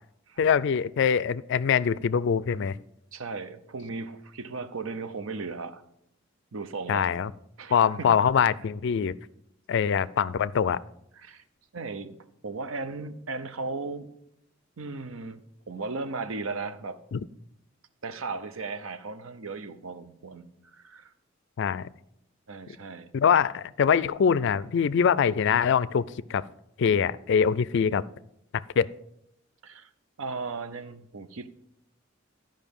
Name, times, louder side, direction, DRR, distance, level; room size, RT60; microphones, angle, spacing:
voice 1, 0.4-2.8 6.9-7.3 7.7-9.1 9.7-10.8 17.1-17.2 21.6-21.9 23.1-26.0 26.3-26.5 26.8-28.0 28.5-28.9, left 7 dB, 60° left, 19 dB, 0.4 m, -23 dB
voice 2, 3.1-5.8 6.5-7.1 7.6-8.1 11.2-11.4 11.7-12.2 12.4-14.1 14.8-15.4 15.7-17.0 18.0-20.5 20.7-21.1 22.5-23.1 29.6-29.9 30.2-31.5, right 3 dB, 85° right, 12 dB, 0.7 m, -36 dB
13.0 x 5.3 x 5.3 m, 0.78 s
head